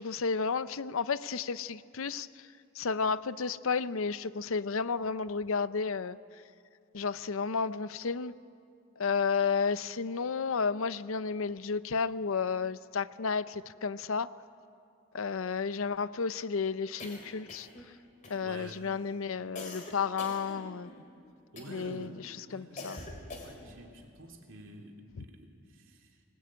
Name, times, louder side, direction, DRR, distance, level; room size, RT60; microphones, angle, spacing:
voice 1, 0.0-2.3 2.7-6.2 6.9-8.3 9.0-14.3 15.1-17.7 18.3-20.9 21.7-23.0, left 5 dB, 70° left, 15 dB, 0.6 m, -32 dB
sound 1, 17.0-17.9 18.2-18.8 19.6-21.0 21.6-22.0 22.8-23.8, left 2 dB, 35° left, 3.4 m, -45 dB
voice 2, 18.4-18.8 21.5-22.2 22.5-23.1 23.4-26.2, right 1 dB, 60° right, 2 dB, 3.0 m, -49 dB
24.0 x 20.0 x 8.9 m, 2.5 s
head